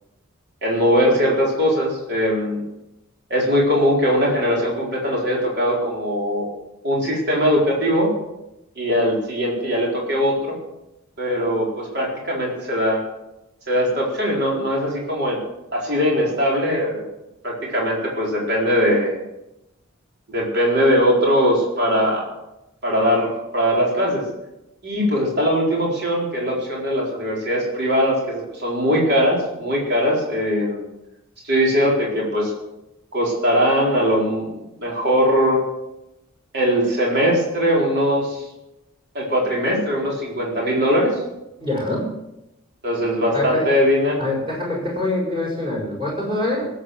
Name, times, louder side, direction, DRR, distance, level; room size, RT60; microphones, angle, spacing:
voice 1, 0.6-2.6 3.3-6.4 6.8-8.1 8.8-10.6 11.2-13.0 13.7-15.4 15.7-17.0 17.4-19.2 20.3-22.3 22.8-24.2 24.8-30.8 31.4-32.5 33.1-35.6 36.5-38.4 39.1-41.2 42.8-44.2, equal, 50° right, -3 dB, 4.5 m, -20 dB
voice 2, 41.6-42.1 43.3-43.7 44.2-46.7, left 2 dB, 25° right, -2 dB, 6.0 m, -24 dB
19.5 x 8.5 x 6.3 m, 0.91 s
head